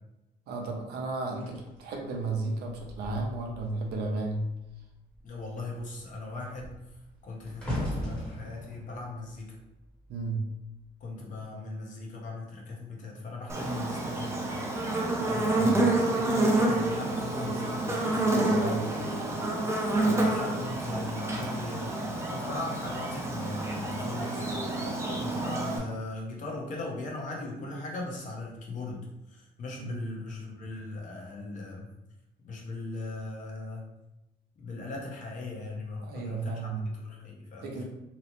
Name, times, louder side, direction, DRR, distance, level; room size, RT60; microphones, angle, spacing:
voice 1, 0.5-4.5 10.1-10.5 15.5-15.8 18.3-19.0 29.8-30.0 36.0-36.9 37.6-37.8, right 3 dB, 75° right, 1 dB, 0.6 m, -33 dB
sound 1, 1.4-4.1 4.4-4.8 5.1-10.4 11.2-11.4, equal, 5° left, 0.9 m, -39 dB
voice 2, 5.2-6.8 7.2-9.6 11.0-14.5 15.2-18.3 19.7-31.9 32.4-33.9 34.6-37.7, left 2 dB, 50° left, -1 dB, 0.8 m, -39 dB
Buzz, 13.5-25.8, right 2 dB, 15° right, 0.5 m, -28 dB
2.9 x 2.0 x 2.9 m, 0.94 s
cardioid pair, 110°, 17 cm